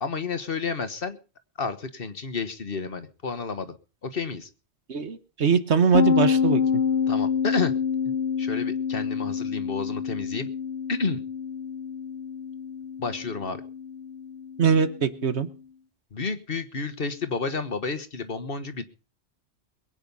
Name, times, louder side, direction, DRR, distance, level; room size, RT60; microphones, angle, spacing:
voice 1, 0.0-1.2 1.6-3.7 4.0-4.5 7.1-7.7 8.4-10.5 10.9-11.2 13.0-13.6 16.1-18.8, left 4 dB, 60° left, 10 dB, 1.5 m, -30 dB
voice 2, 4.9-6.6 14.6-15.5, right 6 dB, 80° right, 11 dB, 1.5 m, -22 dB
sound 1, 5.9-15.4, left 7 dB, 80° left, 2.2 m, -27 dB
22.0 x 9.0 x 5.5 m, 0.35 s
omnidirectional pair, 1.1 m